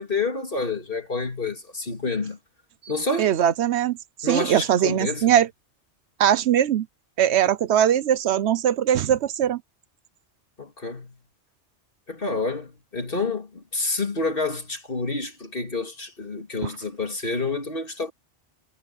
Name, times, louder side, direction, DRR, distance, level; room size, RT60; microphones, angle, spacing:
voice 1, 0.0-2.4 2.9-3.3 4.2-5.4 10.6-11.2 12.1-18.1, left 3 dB, 50° left, 3.1 m, -28 dB
voice 2, 3.2-5.5 6.2-6.9 7.2-9.6, right 10 dB, 70° right, 0.9 m, -21 dB
omnidirectional pair, 1.2 m